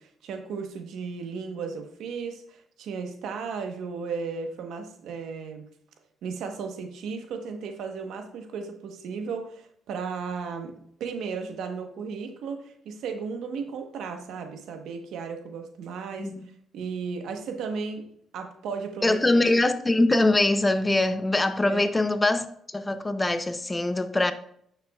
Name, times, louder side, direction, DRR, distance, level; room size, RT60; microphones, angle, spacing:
voice 1, 0.0-5.6 6.2-16.3 16.7-18.1 18.3-19.4 21.6-21.8, right 5 dB, 80° right, 1.1 m, -35 dB
voice 2, 19.0-24.3, left 2 dB, 20° left, 0.6 m, -23 dB
9.2 x 6.6 x 2.4 m
cardioid pair, 90°, 0 cm